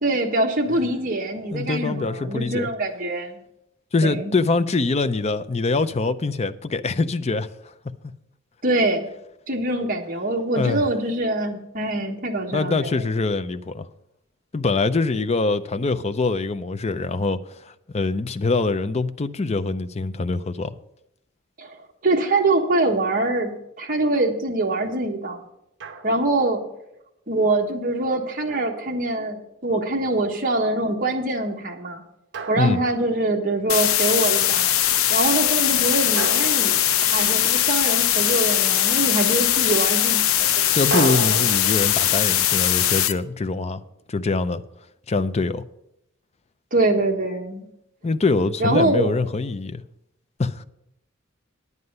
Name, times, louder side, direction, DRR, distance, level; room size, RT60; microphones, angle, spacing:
voice 1, 0.0-3.4 4.0-4.3 8.6-9.1 9.5-12.9 21.6-21.8 22.0-23.5 23.8-25.4 26.0-26.6 27.3-32.0 32.5-34.7 35.1-36.8 37.1-40.2 40.6-40.7 46.7-47.7 48.6-49.2, right 2 dB, 40° right, 1.4 m, -24 dB
voice 2, 1.5-2.7 3.9-7.5 10.6-10.8 12.5-13.9 14.5-17.4 17.6-20.8 32.6-32.8 40.7-43.8 44.1-44.6 45.1-45.6 48.0-49.8 50.4-50.6, left 3 dB, 30° left, 0.5 m, -24 dB
Drum, 25.8-26.5 28.5-29.6 32.3-33.5 36.2-37.8 40.9-43.9, right 4 dB, 60° right, 1.0 m, -34 dB
sound 1, 33.7-43.1, left 11 dB, 80° left, 0.6 m, -20 dB
9.6 x 9.6 x 5.4 m
head